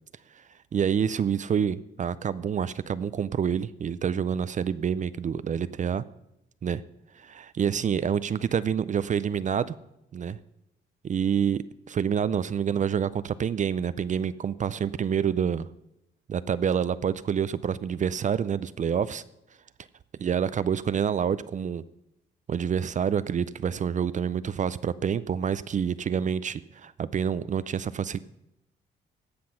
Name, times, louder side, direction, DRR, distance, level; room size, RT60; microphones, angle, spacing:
voice 1, 0.7-6.0 6.6-6.8 7.2-9.7 10.1-10.4 11.0-15.7 16.3-19.2 20.2-21.8 22.5-28.2, right 7 dB, 40° right, 16 dB, 0.4 m, -27 dB
16.0 x 6.0 x 5.8 m, 0.84 s
cardioid pair, 90°, 20 cm